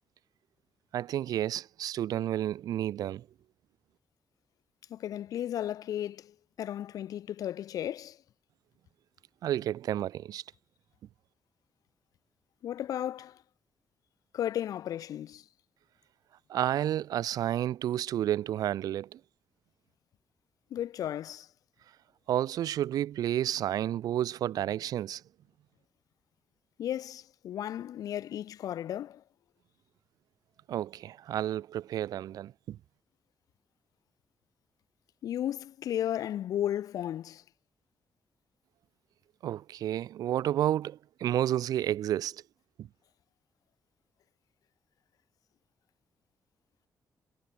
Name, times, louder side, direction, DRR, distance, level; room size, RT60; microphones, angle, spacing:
voice 1, 0.9-3.2 9.4-10.4 16.5-19.2 22.3-25.2 30.7-32.8 39.4-42.4 42.8-42.9, right 12 dB, 85° right, 0.7 m, -31 dB
voice 2, 4.9-8.2 12.6-13.4 14.3-15.4 20.7-21.5 26.8-29.2 35.2-37.4, left 11 dB, 75° left, 0.8 m, -34 dB
wide cardioid pair, 175°, 6 cm